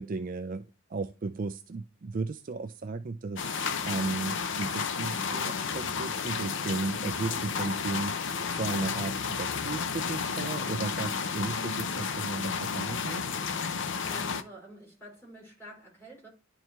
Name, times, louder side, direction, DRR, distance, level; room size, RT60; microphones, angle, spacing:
voice 1, 0.0-13.2, right 3 dB, 40° right, 0.3 m, -35 dB
sound 1, 3.4-14.4, left 6 dB, 55° left, 0.6 m, -32 dB
voice 2, 14.0-16.3, equal, 10° left, 3.2 m, -48 dB
10.5 x 4.6 x 3.3 m
head